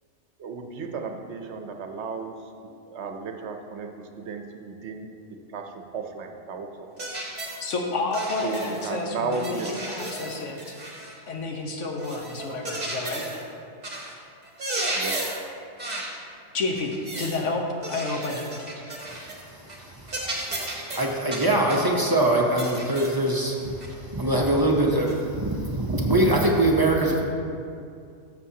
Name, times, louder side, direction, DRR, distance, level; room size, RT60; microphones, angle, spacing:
voice 1, 0.4-7.1 8.4-9.7 15.0-15.3, right 4 dB, 70° right, 5 dB, 1.0 m, -34 dB
sound 1, 7.0-7.6 8.1-8.9 9.3-11.2 12.0-13.4 13.8-14.1 14.4-15.5 15.8-16.2 16.8-17.4 17.8-19.4 19.7-19.8 20.1-21.9 22.6-23.2 23.8-23.9 25.1-25.2, right 1 dB, 35° right, 1.3 m, -34 dB
voice 2, 7.6-10.7 11.3-13.4 16.5-18.5, left 3 dB, 90° left, 1 dB, 1.3 m, -30 dB
voice 3, 20.0-20.5 20.9-27.2, right 1 dB, 20° right, -1 dB, 0.7 m, -23 dB
13.0 x 6.9 x 2.8 m, 2.4 s
omnidirectional pair, 1.2 m